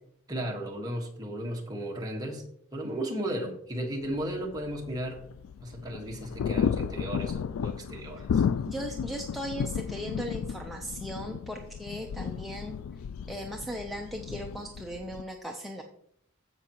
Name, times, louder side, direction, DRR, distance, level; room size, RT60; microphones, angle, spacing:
voice 1, 0.3-2.4 2.7-5.3 5.6-8.4, right 1 dB, 20° right, 0 dB, 1.5 m, -35 dB
sound 1, 4.0-15.2, left 7 dB, 80° left, 0.3 m, -33 dB
voice 2, 8.7-12.7 13.3-15.8, equal, ahead, 0 dB, 0.7 m, -37 dB
15.0 x 5.9 x 3.0 m, 0.69 s
head